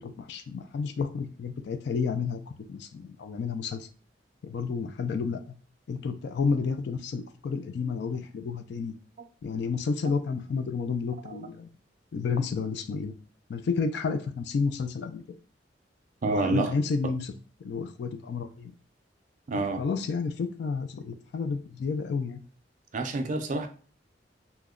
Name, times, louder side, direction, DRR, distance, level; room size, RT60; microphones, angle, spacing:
voice 1, 0.0-2.4 2.7-3.9 4.4-5.5 5.9-8.9 9.4-11.7 12.1-13.1 13.5-15.2 16.2-17.3 17.6-18.7 19.5-22.4, left 5 dB, 65° left, 0.3 m, -31 dB
voice 2, 16.2-16.7 19.5-19.8 22.9-23.7, right 2 dB, 45° right, 0.4 m, -28 dB
2.8 x 2.0 x 3.6 m
head